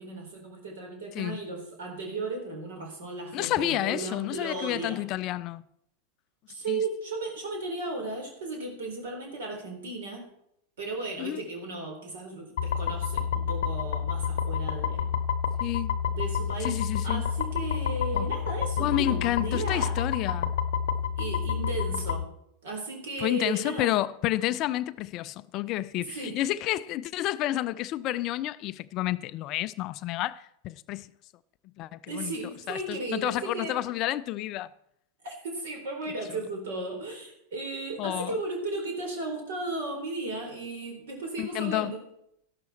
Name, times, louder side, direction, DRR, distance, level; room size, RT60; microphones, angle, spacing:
voice 1, 0.0-5.0 6.5-10.3 10.8-15.1 16.1-20.0 21.2-22.3 22.6-24.0 26.0-26.4 32.1-33.8 35.2-42.0, right 2 dB, 60° right, 4.1 m, -35 dB
voice 2, 3.3-5.6 6.7-6.8 11.2-11.4 15.6-16.0 16.6-17.2 18.1-18.3 18.8-20.5 23.2-31.1 31.8-32.3 32.7-34.7 38.0-38.3 41.4-41.9, left 15 dB, 40° left, 0.4 m, -30 dB
sound 1, 12.6-22.2, left 7 dB, 55° left, 0.8 m, -29 dB
13.0 x 11.5 x 4.3 m
figure-of-eight pair, 90°, 0 cm